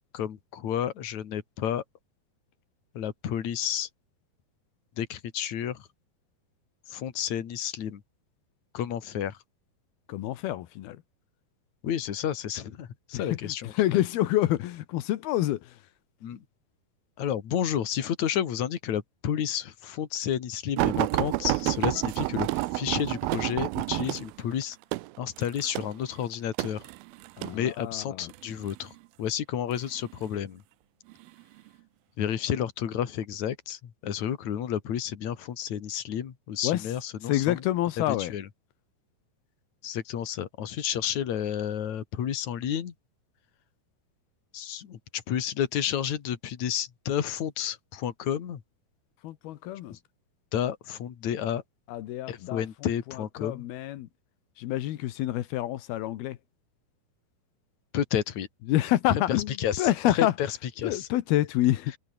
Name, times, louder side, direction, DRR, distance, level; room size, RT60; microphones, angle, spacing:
voice 1, 0.1-1.8 2.9-3.9 5.0-5.8 6.9-8.0 8.7-9.4 11.8-13.7 16.2-16.4 17.2-24.8 25.2-26.8 27.5-28.9 29.2-30.6 32.2-37.6 38.1-38.5 39.8-42.9 44.5-48.6 49.9-50.0 50.5-51.6 52.3-53.6 57.9-58.5 59.6-60.5 60.8-61.1, left 9 dB, 55° left, 3.3 m, -31 dB
voice 2, 10.1-11.0 13.1-15.8 27.4-28.3 36.6-36.9 37.2-38.4 49.2-50.0 51.9-52.6 53.1-54.1 54.6-56.4 58.7-60.3 60.8-61.9, left 14 dB, 85° left, 3.1 m, -28 dB
sound 1, 20.8-27.6 28.3-28.8 29.7-30.4 31.1-31.3 31.7-31.8, right 20 dB, 80° right, 2.5 m, -29 dB
omnidirectional pair, 4.3 m